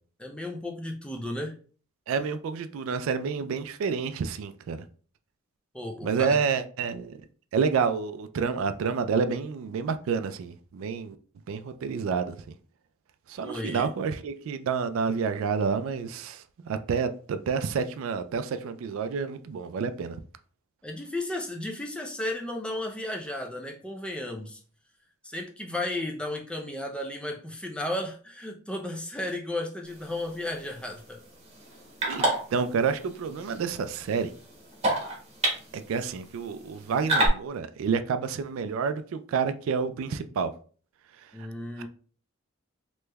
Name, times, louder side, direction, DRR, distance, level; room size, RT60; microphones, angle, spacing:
voice 1, 0.2-1.6 5.7-6.4 13.4-13.9 20.8-24.6 25.2-31.2 41.3-41.9, left 1 dB, 5° left, 0.4 m, -34 dB
voice 2, 2.1-4.8 6.0-7.2 7.5-11.2 11.5-12.4 13.3-20.2 32.1-34.3 35.7-40.5 41.4-41.5, right 5 dB, 65° right, 0.3 m, -29 dB
sound 1, 29.9-37.3, right 1 dB, 30° right, 1.1 m, -32 dB
3.3 x 3.0 x 2.2 m
head